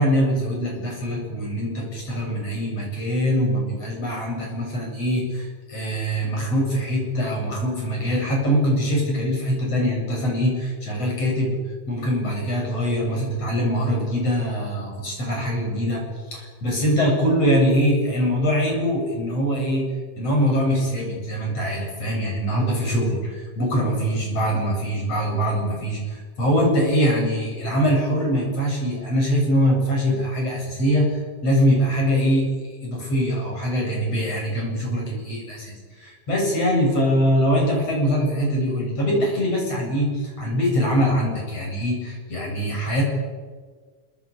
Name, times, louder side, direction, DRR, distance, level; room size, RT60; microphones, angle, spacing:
voice 1, 0.0-11.6 11.9-16.0 16.3-19.9 20.2-43.0, equal, 50° left, 0 dB, 9.1 m, -23 dB
24.5 x 24.0 x 8.8 m, 1.5 s
omnidirectional pair, 3.7 m